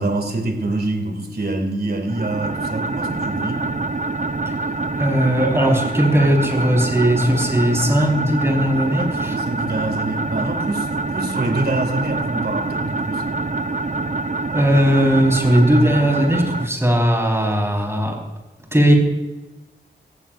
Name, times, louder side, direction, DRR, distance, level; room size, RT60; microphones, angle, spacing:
voice 1, 0.0-3.6 8.9-13.2, right 2 dB, 60° right, 3 dB, 2.6 m, -25 dB
sound 1, 2.1-16.7, right 3 dB, 40° right, 0.7 m, -25 dB
voice 2, 5.0-9.3 14.5-18.2 18.7-18.9, equal, 15° right, 0 dB, 4.5 m, -18 dB
19.0 x 15.0 x 2.6 m, 1.1 s
wide cardioid pair, 85°, 19 cm